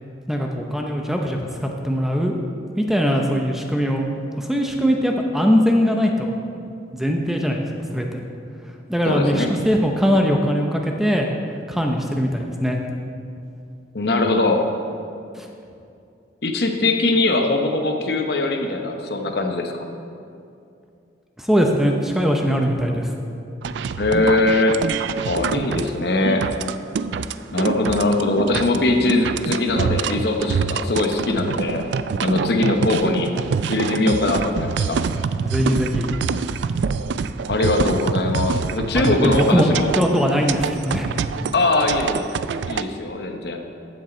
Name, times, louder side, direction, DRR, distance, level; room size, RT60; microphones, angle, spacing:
voice 1, 0.3-2.4 2.8-4.1 4.4-6.3 6.9-7.6 7.9-8.2 8.9-11.3 11.7-12.8 15.3-15.5 21.4-23.1 35.4-36.1 38.9-41.1, equal, ahead, 1 dB, 0.6 m, -21 dB
voice 2, 9.0-9.5 13.9-14.7 16.4-19.9 24.0-24.8 25.3-26.5 27.5-31.8 32.2-33.3 33.7-35.0 37.5-39.9 41.5-42.3 42.7-43.6, left 2 dB, 60° left, 4 dB, 0.9 m, -21 dB
sound 1, 23.6-42.8, right 5 dB, 75° right, 0.3 m, -26 dB
14.5 x 6.4 x 4.3 m, 2.5 s
head